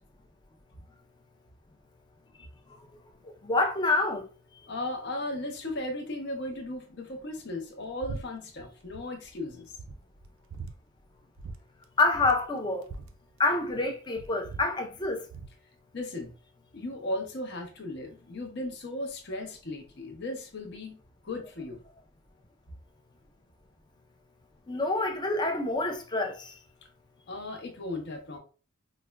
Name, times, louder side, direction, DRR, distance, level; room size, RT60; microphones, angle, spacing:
voice 1, 3.2-4.3 12.0-12.9 13.4-15.3 24.7-26.6, left 2 dB, 20° left, 0.5 m, -27 dB
voice 2, 4.7-9.7 15.9-16.3 16.7-21.0 21.2-21.8 27.3-28.4, left 1 dB, 55° left, 0.7 m, -36 dB
sound 1, 8.0-8.2 8.5-9.1 9.4-9.5 9.8-10.7 11.4-11.6 11.8-11.9 12.1-13.8 14.1-15.6, right 4 dB, 65° right, 0.4 m, -41 dB
4.8 x 2.1 x 2.2 m
head